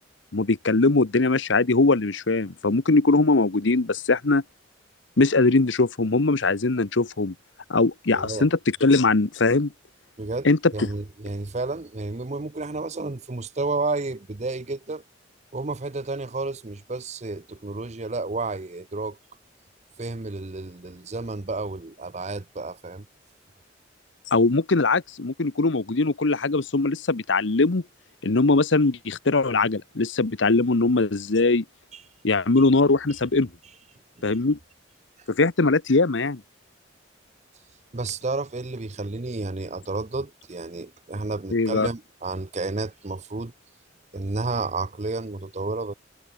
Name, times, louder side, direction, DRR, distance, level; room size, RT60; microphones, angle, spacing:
voice 1, 0.3-4.4 5.2-7.3 7.7-9.7 10.4-10.6 24.3-27.8 28.2-31.6 32.2-33.5 34.2-34.6 35.3-36.4 41.5-41.9, left 3 dB, 70° left, 1.0 m, -21 dB
voice 2, 8.1-8.5 10.2-10.5 10.7-15.0 15.5-19.2 20.0-23.1 31.9-32.0 34.2-34.4 37.9-43.5 44.1-45.9, right 3 dB, 35° right, 0.8 m, -31 dB
head